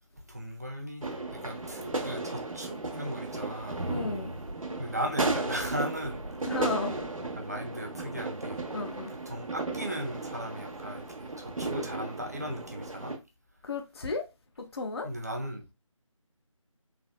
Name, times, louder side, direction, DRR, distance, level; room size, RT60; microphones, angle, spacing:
voice 1, 0.3-3.9 4.8-6.2 7.4-8.7 9.1-13.1 15.0-15.7, equal, 30° right, 0.5 m, -37 dB
sound 1, 1.0-13.2, right 2 dB, 80° right, 0.7 m, -35 dB
voice 2, 3.9-4.3 6.5-7.0 8.7-9.1 13.6-14.3 14.6-15.1, left 3 dB, 50° left, 0.4 m, -33 dB
3.3 x 2.3 x 2.3 m
figure-of-eight pair, 160°, 17 cm